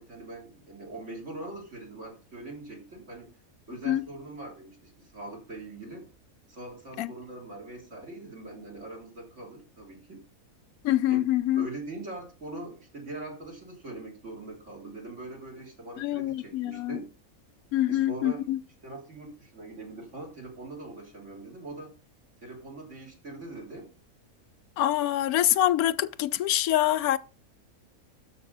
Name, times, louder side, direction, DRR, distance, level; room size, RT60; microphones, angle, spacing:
voice 1, 0.0-3.3 3.7-6.1 6.5-10.2 11.1-17.1 17.9-18.4 18.8-21.9 22.4-23.9, right 2 dB, 55° right, 3.7 m, -42 dB
voice 2, 10.8-11.7 16.0-17.0 17.7-18.6 24.8-27.2, left 13 dB, 80° left, 1.1 m, -25 dB
12.5 x 5.5 x 4.0 m
omnidirectional pair, 1.5 m